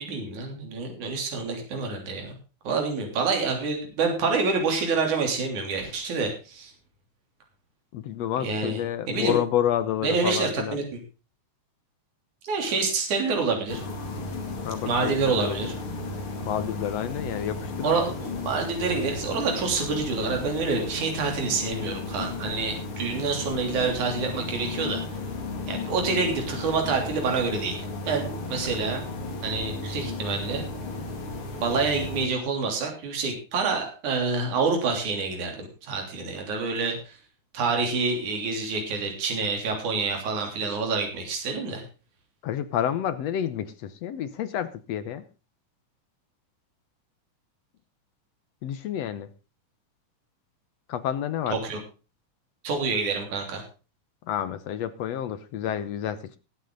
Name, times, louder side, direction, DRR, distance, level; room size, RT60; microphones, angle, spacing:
voice 1, 0.0-2.3 2.6-6.7 8.4-8.8 9.1-9.4 10.0-10.8 12.4-13.8 14.9-15.7 17.8-25.0 25.7-29.0 29.4-30.6 31.6-37.1 37.5-41.8 51.5-51.8 52.6-53.6, right 4 dB, 70° right, 3 dB, 4.6 m, -27 dB
voice 2, 7.9-10.8 14.6-15.6 16.5-18.2 42.4-45.2 48.6-49.3 50.9-51.6 54.3-56.4, left 10 dB, 65° left, 13 dB, 1.8 m, -29 dB
sound 1, 13.7-32.3, left 3 dB, 45° left, 3.0 m, -34 dB
19.5 x 8.4 x 3.8 m, 0.33 s
omnidirectional pair, 3.6 m